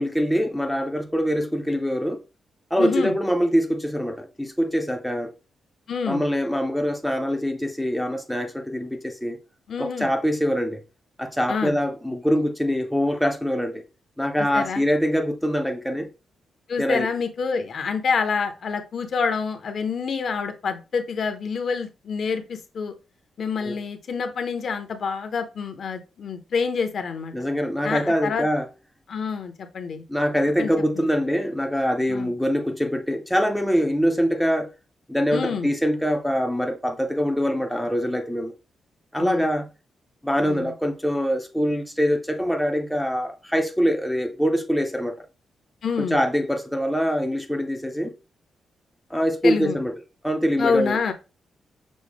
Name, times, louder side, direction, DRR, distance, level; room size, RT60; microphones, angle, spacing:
voice 1, 0.0-2.2 2.7-5.3 6.1-9.4 9.8-10.8 11.2-13.8 14.2-16.1 16.8-17.1 23.6-23.8 27.3-28.7 30.1-34.7 35.1-38.5 39.1-39.7 40.2-45.3 46.0-48.1 49.1-49.9 50.2-51.0, equal, ahead, 0.4 m, -24 dB
voice 2, 2.8-3.1 5.9-6.2 9.7-10.1 11.5-11.7 14.5-14.8 16.7-22.9 23.4-27.3 27.8-28.5 29.1-30.0 30.6-30.7 31.0-31.1 32.1-32.3 35.3-35.7 39.1-39.5 40.4-40.7 45.8-46.2 49.4-49.8 50.6-51.1, left 5 dB, 50° left, 0.6 m, -27 dB
6.1 x 2.0 x 3.4 m
wide cardioid pair, 165°, 0 cm